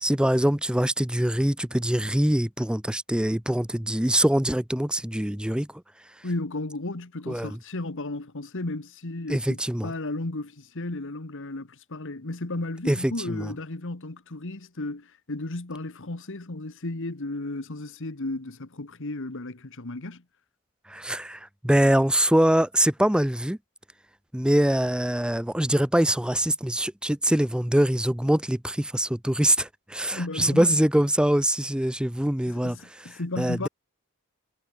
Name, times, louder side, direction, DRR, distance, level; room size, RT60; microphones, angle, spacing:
voice 1, 0.0-5.7 7.3-7.5 9.3-9.9 12.9-13.5 20.9-23.6 24.3-32.8 33.4-33.7, right 1 dB, 5° right, 0.8 m, -23 dB
voice 2, 6.2-20.2 30.1-30.8 32.5-33.7, left 2 dB, 60° left, 1.6 m, -34 dB
head